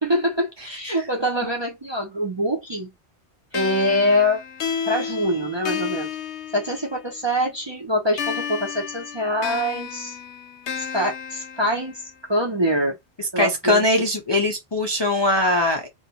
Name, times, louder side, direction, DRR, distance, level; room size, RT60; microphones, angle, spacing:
voice 1, 0.0-2.9 3.5-4.4 4.9-6.1 6.5-10.2 10.8-13.0 13.3-13.8, equal, 35° right, 0.5 m, -24 dB
sound 1, 3.5-7.2 8.2-12.2, left 7 dB, 85° left, 0.9 m, -32 dB
voice 2, 13.2-15.9, left 1 dB, 40° left, 0.4 m, -21 dB
2.5 x 2.2 x 2.7 m
omnidirectional pair, 1.1 m